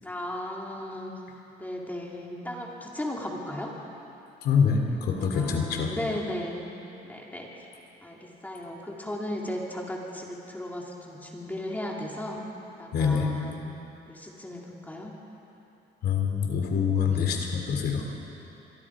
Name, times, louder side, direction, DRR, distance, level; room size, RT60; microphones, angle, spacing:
voice 1, 0.0-1.1 1.6-3.7 5.2-6.7 7.0-7.7 8.0-12.5 12.8-13.7 14.0-15.1 17.1-17.2, left 1 dB, 10° left, -2 dB, 3.2 m, -36 dB
voice 2, 4.4-5.9 12.9-13.3 16.0-18.1, left 6 dB, 70° left, 2 dB, 3.1 m, -25 dB
25.5 x 23.0 x 5.0 m, 3.0 s
cardioid pair, 110°, 17 cm